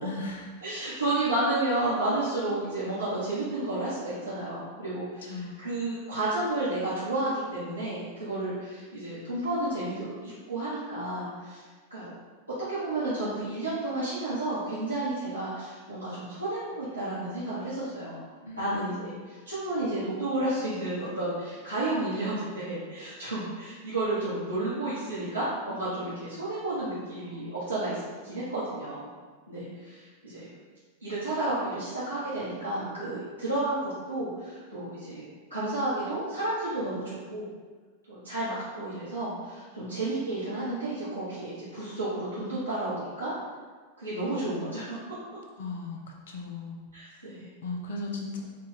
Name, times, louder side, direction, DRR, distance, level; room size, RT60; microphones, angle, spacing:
voice 1, 0.0-0.5 5.2-5.6 18.3-19.0 45.6-46.0 46.3-46.9 47.6-48.4, left 3 dB, 60° left, 1 dB, 0.6 m, -36 dB
voice 2, 0.6-11.6 11.9-12.1 12.7-18.2 18.6-29.1 29.5-30.5 31.0-37.5 38.1-43.3 44.0-45.0 46.9-47.5, right 2 dB, 85° right, -13 dB, 1.1 m, -31 dB
4.2 x 2.5 x 3.6 m, 1.4 s
figure-of-eight pair, 90°, 0 cm